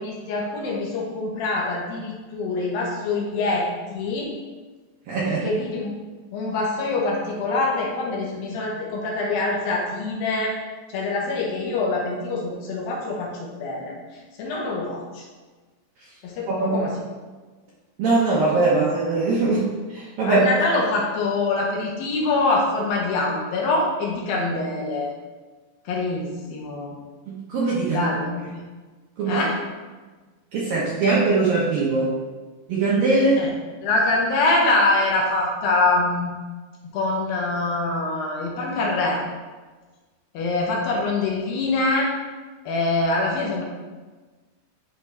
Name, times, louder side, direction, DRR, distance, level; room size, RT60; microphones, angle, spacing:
voice 1, 0.0-4.3 5.2-5.9 6.3-10.6 10.9-15.2 16.2-17.0 18.7-18.8 20.2-25.1 25.9-27.0 27.9-28.6 29.3-29.6 33.4-33.5 33.8-36.3 36.8-39.2 40.3-42.1 42.7-43.6, left 2 dB, 65° left, -2 dB, 2.6 m, -24 dB
voice 2, 5.1-5.4 16.5-16.8 18.0-19.6 19.9-20.4 27.3-28.1 29.2-29.4 30.5-32.1 32.7-33.4, right 3 dB, 70° right, -6 dB, 2.2 m, -21 dB
10.5 x 3.7 x 4.5 m, 1.3 s
omnidirectional pair, 5.2 m